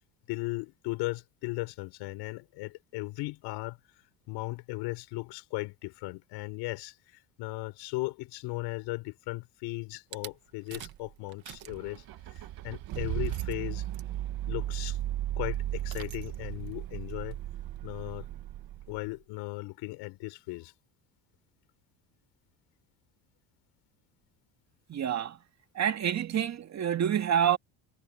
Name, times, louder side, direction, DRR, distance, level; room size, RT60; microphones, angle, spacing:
voice 1, 0.3-3.8 4.3-12.0 12.3-13.9 14.5-15.0 15.4-17.4 17.8-18.3 18.9-20.7, left 23 dB, 90° left, 6.7 m, -37 dB
Rattle / Car / Engine starting, 10.1-10.3 10.7-11.0 11.3-19.1, right 13 dB, 60° right, 1.7 m, -36 dB
voice 2, 24.9-25.4 25.7-27.6, right 9 dB, 40° right, 2.3 m, -27 dB
cardioid pair, 120°, 40 cm